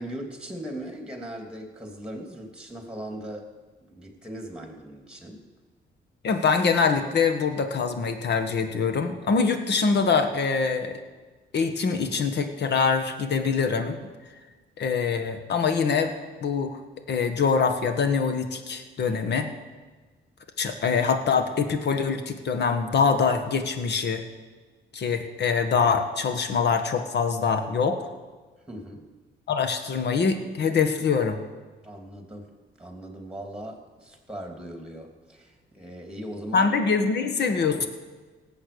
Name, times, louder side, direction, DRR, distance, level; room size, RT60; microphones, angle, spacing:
voice 1, 0.0-3.5 3.8-5.4 28.7-29.0 31.8-32.5 32.8-36.8, right 1 dB, 5° right, 3 dB, 2.9 m, -39 dB
voice 2, 6.2-11.0 11.5-14.0 14.8-16.1 16.4-16.8 17.1-19.5 20.6-24.2 24.9-28.1 29.5-31.4 36.5-37.9, left 5 dB, 60° left, 7 dB, 1.6 m, -24 dB
18.0 x 7.9 x 6.9 m, 1.3 s
cardioid pair, 90°, 20 cm